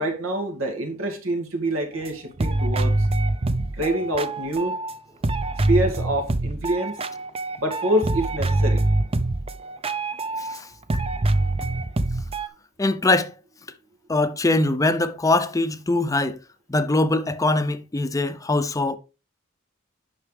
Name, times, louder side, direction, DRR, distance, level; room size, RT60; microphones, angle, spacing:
voice 1, 0.0-3.1 3.8-4.8 5.7-7.0 7.6-8.8, right 1 dB, 85° right, 2.3 m, -26 dB
sound 1, 2.0-2.1 2.4-5.0 5.2-10.6 10.9-12.5, right 2 dB, 30° right, 0.6 m, -24 dB
voice 2, 12.8-13.3 14.1-16.4 16.7-19.0, left 2 dB, 15° left, 0.6 m, -22 dB
10.0 x 5.8 x 3.3 m
head